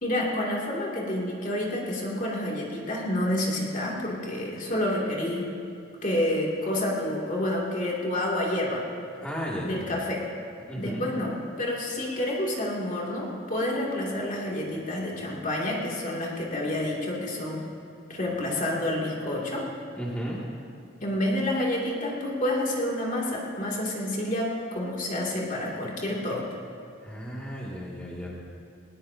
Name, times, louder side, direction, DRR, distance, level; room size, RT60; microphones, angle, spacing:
voice 1, 0.0-5.5 6.0-8.8 9.6-10.3 10.8-17.6 18.1-19.7 21.0-26.5, left 1 dB, 40° left, -3 dB, 2.6 m, -29 dB
voice 2, 9.2-9.9 10.7-11.0 20.0-20.4 27.0-28.3, equal, 5° left, -6 dB, 2.3 m, -34 dB
20.5 x 19.5 x 2.8 m, 2.5 s
head